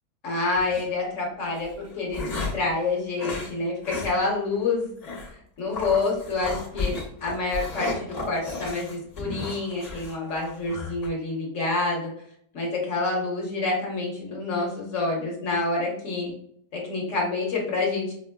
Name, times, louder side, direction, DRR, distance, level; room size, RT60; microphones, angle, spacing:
voice 1, 0.2-4.9 5.6-12.1 12.5-16.3 16.7-18.1, left 3 dB, 50° left, -3 dB, 1.3 m, -27 dB
sound 1, 0.5-0.8 1.6-2.7 3.2-3.5 3.8-4.1 4.4-4.5 5.0-5.3 5.7-11.1, left 3 dB, 35° left, 0.7 m, -34 dB
5.1 x 2.1 x 2.2 m, 0.67 s
omnidirectional pair, 1.8 m